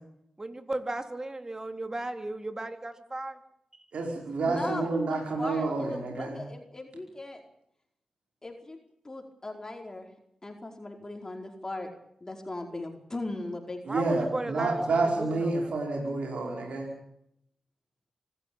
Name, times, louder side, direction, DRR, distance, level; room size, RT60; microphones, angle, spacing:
voice 1, 0.4-3.4 13.9-15.6, right 2 dB, 30° right, 8 dB, 3.5 m, -35 dB
voice 2, 3.9-6.4 13.9-16.9, right 3 dB, 80° right, 1 dB, 5.1 m, -29 dB
voice 3, 4.4-7.4 8.4-8.8 9.0-10.1 10.4-11.9 12.2-14.2, left 2 dB, 30° left, 3 dB, 4.8 m, -38 dB
25.0 x 14.0 x 8.9 m, 0.74 s
cardioid pair, 55°, 2 cm